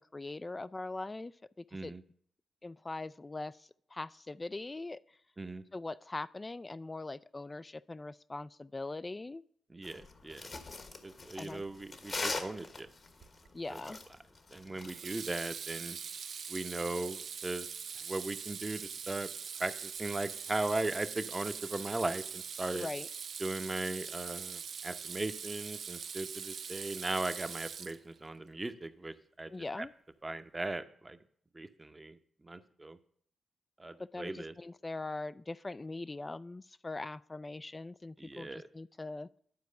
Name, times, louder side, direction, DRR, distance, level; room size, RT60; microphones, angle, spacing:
voice 1, 0.1-1.3 1.6-1.9 2.6-5.0 5.7-9.4 11.4-11.6 13.5-14.0 22.7-23.1 29.5-29.9 34.0-39.3, left 2 dB, 30° left, 15 dB, 0.3 m, -41 dB
voice 2, 1.7-2.0 5.4-5.6 9.7-10.5 11.0-12.9 13.7-13.8 14.5-16.0 16.5-17.7 18.0-19.3 19.6-22.9 23.4-29.5 29.8-29.9 30.2-31.2 31.5-32.2 32.4-33.0 33.8-34.5 38.2-38.7, right 2 dB, 25° right, 10 dB, 0.7 m, -38 dB
sound 1, 9.8-15.0, left 3 dB, 50° left, 1.2 m, -41 dB
Water tap faucet / Sink (filling or washing), 13.2-13.6 14.9-28.3, right 6 dB, 65° right, 0.4 m, -42 dB
10.5 x 4.6 x 6.6 m, 0.63 s
hypercardioid pair, 40°, 0 cm